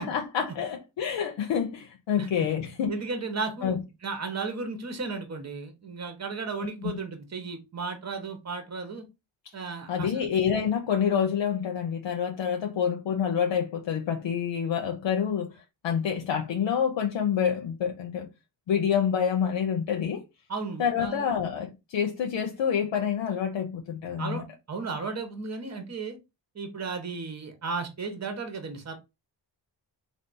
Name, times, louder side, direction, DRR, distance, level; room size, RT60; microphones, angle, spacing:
voice 1, 0.0-2.9 3.6-3.8 6.8-7.0 9.9-18.3 18.7-20.2 20.8-24.4, left 8 dB, 70° left, 0.6 m, -27 dB
voice 2, 2.9-9.0 9.5-10.3 20.5-21.4 24.2-26.2 26.5-28.9, right 4 dB, 35° right, 1.0 m, -34 dB
3.3 x 2.0 x 4.0 m
cardioid pair, 80°, 46 cm